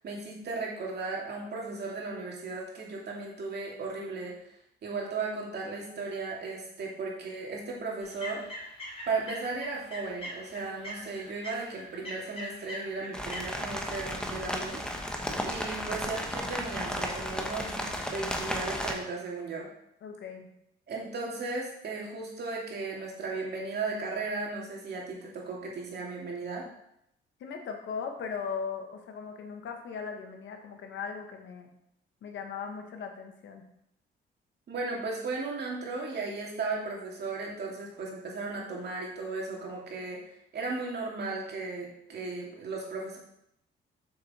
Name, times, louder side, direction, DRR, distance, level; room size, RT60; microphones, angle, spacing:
voice 1, 0.0-4.3 4.8-8.4 9.1-14.8 15.4-19.7 20.9-26.7 34.7-40.2 40.5-43.2, right 3 dB, 55° right, -2 dB, 2.4 m, -36 dB
sound 1, 8.0-13.4, equal, 30° left, 3.2 m, -42 dB
sound 2, 13.1-18.9, equal, 5° left, 1.1 m, -34 dB
voice 2, 20.0-20.5 27.4-31.7 32.2-33.6, left 6 dB, 70° left, 4 dB, 1.3 m, -38 dB
6.7 x 6.2 x 4.3 m, 0.77 s
cardioid pair, 90°, 20 cm